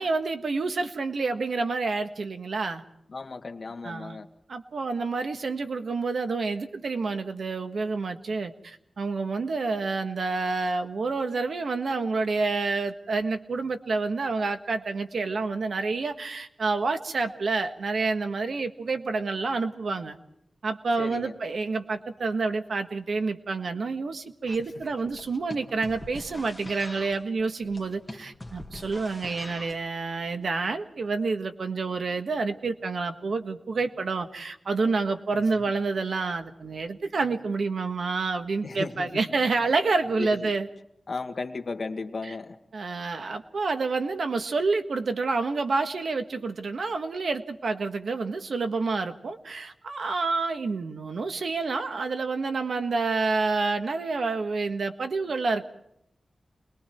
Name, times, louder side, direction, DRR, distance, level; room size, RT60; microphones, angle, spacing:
voice 1, 0.0-2.8 3.8-4.2 4.5-20.2 20.6-40.7 42.2-42.3 42.7-55.7, right 3 dB, 70° right, 1.6 m, -28 dB
voice 2, 3.1-4.3 21.0-21.3 35.3-35.7 38.6-39.2 40.2-40.5 41.1-42.6, left 4 dB, 50° left, 1.6 m, -35 dB
sound 1, 24.5-29.9, left 1 dB, 10° left, 2.2 m, -43 dB
29.0 x 21.0 x 4.6 m
wide cardioid pair, 105°, 0 cm